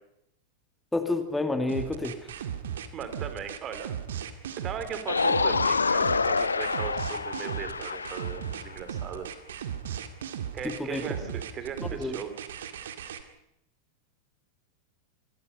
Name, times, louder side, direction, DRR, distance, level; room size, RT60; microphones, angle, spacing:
voice 1, 0.9-2.2 10.6-11.0 11.9-12.2, left 2 dB, 5° left, 7 dB, 2.4 m, -29 dB
sound 1, 1.7-13.2, right 9 dB, 60° right, 2.1 m, -36 dB
voice 2, 2.9-4.0 4.6-9.3 10.5-12.3, right 7 dB, 30° right, 9 dB, 3.6 m, -38 dB
sound 2, 5.1-8.6 11.2-11.3, left 4 dB, 75° left, 0.9 m, -27 dB
26.5 x 22.0 x 5.5 m, 0.83 s
figure-of-eight pair, 90°, 0 cm